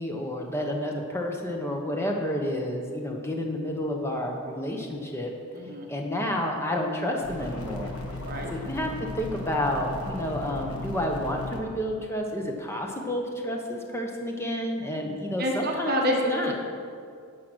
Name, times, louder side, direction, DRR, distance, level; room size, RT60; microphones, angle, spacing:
voice 1, 0.0-5.3 5.9-7.9 8.5-8.9 9.1-16.5, left 1 dB, 10° left, 1 dB, 1.0 m, -30 dB
voice 2, 5.5-5.9 8.2-8.5 15.4-16.5, equal, 40° right, 0 dB, 1.3 m, -28 dB
sound 1, 7.2-11.6, left 2 dB, 85° left, 1.6 m, -36 dB
10.5 x 8.3 x 6.2 m, 2.3 s
head